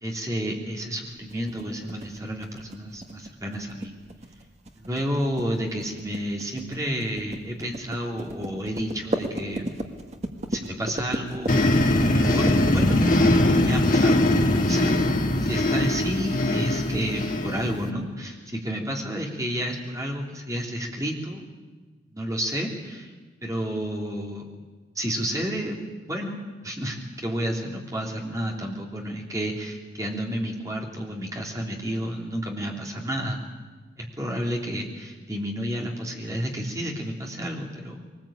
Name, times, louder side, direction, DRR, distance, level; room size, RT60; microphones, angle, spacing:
voice 1, 0.0-3.9 4.8-9.6 10.5-11.6 12.1-14.4 14.7-15.0 15.4-21.4 22.1-23.1 23.4-24.5 24.9-25.8 26.1-33.4 34.0-38.0, equal, 15° right, 0 dB, 3.2 m, -31 dB
sound 1, 1.3-15.0, right 1 dB, 35° right, 1.8 m, -35 dB
sound 2, 11.5-17.9, left 1 dB, 45° left, 1.9 m, -21 dB
22.5 x 20.0 x 8.9 m, 1.3 s
head